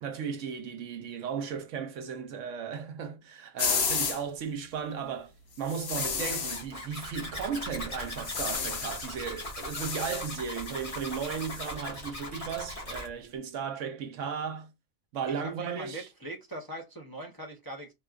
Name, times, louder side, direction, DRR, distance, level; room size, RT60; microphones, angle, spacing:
voice 1, 0.0-14.7 15.1-16.1, right 7 dB, 70° right, 1.0 m, -35 dB
sound 1, 3.6-4.2 5.7-6.6 8.1-9.1 9.4-11.7, left 6 dB, 55° left, 1.0 m, -33 dB
Zipper (clothing), 5.9-13.1, left 1 dB, 40° left, 1.8 m, -40 dB
voice 2, 15.3-17.9, right 1 dB, 25° left, 0.5 m, -41 dB
4.3 x 2.3 x 2.3 m
omnidirectional pair, 1.4 m